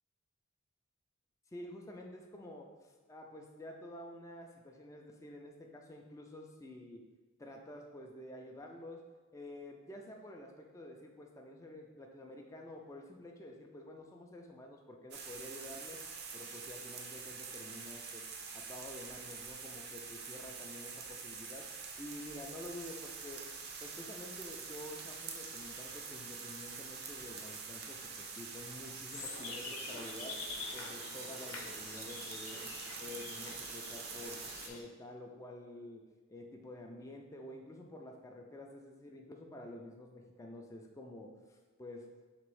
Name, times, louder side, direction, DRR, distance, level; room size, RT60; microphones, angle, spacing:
voice 1, 1.5-7.0 7.4-9.1 9.3-16.0 16.3-21.7 22.0-30.4 30.7-32.7 33.0-36.0 36.3-42.1, left 1 dB, 15° left, 1 dB, 0.3 m, -49 dB
sound 1, 15.1-34.7, right 5 dB, 50° right, 0.5 m, -46 dB
sound 2, 29.1-34.8, left 4 dB, 85° left, 0.7 m, -46 dB
3.4 x 3.0 x 4.7 m, 1.3 s
head